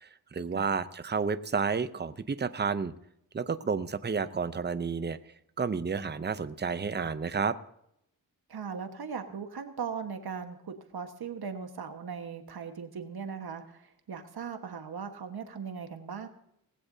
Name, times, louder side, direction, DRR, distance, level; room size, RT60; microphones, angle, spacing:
voice 1, 0.0-2.9 3.3-5.2 5.6-7.6, right 5 dB, 30° right, 12 dB, 0.7 m, -31 dB
voice 2, 8.5-16.3, right 6 dB, 85° right, 6 dB, 1.5 m, -39 dB
18.5 x 16.0 x 2.8 m, 0.76 s
wide cardioid pair, 115°, 37 cm